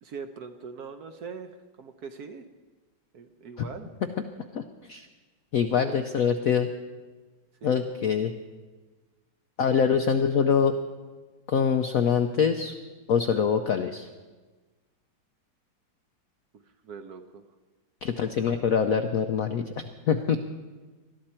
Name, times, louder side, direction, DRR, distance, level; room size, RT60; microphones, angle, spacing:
voice 1, 0.0-2.5 3.1-3.9 5.7-6.0 7.6-7.9 16.5-17.4, right 5 dB, 65° right, 7 dB, 1.1 m, -41 dB
voice 2, 5.5-6.7 7.6-8.3 9.6-10.7 11.5-12.7 13.1-14.1 18.0-20.4, left 7 dB, 75° left, 7 dB, 0.8 m, -24 dB
20.5 x 12.5 x 4.4 m, 1.3 s
omnidirectional pair, 2.2 m